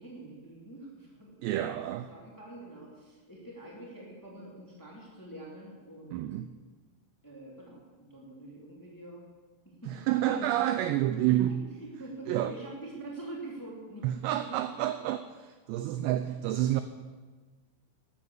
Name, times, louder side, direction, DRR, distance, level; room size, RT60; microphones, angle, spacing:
voice 1, 0.0-1.8 2.1-6.3 7.2-9.2 9.6-10.7 11.3-14.3 14.6-14.7, right 2 dB, 5° left, -4 dB, 2.1 m, -45 dB
voice 2, 1.4-2.1 6.1-6.5 9.9-11.6 12.3-12.5 14.0-16.8, right 13 dB, 85° right, 11 dB, 2.5 m, -29 dB
13.0 x 10.5 x 7.3 m, 1.3 s
omnidirectional pair, 5.5 m